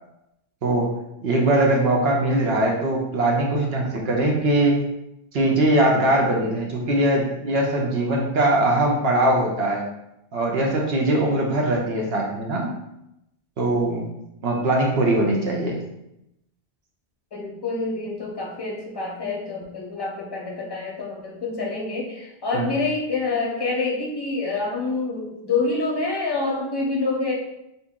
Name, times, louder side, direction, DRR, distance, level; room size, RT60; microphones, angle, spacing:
voice 1, 1.2-4.8 5.3-9.8 10.3-12.7 13.6-14.0 14.4-15.8 22.5-22.7, right 1 dB, 70° right, -1 dB, 1.0 m, -21 dB
voice 2, 17.3-27.3, left 3 dB, 25° left, -3 dB, 0.7 m, -27 dB
2.8 x 2.6 x 3.5 m, 0.85 s
omnidirectional pair, 1.1 m